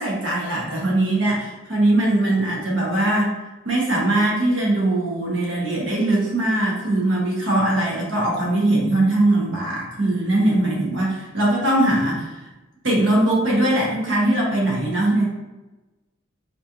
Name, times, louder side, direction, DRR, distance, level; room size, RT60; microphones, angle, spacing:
voice 1, 0.0-3.3 3.6-12.3 12.8-15.3, right 1 dB, 65° right, -3 dB, 1.0 m, -21 dB
4.0 x 2.9 x 2.5 m, 1.1 s
head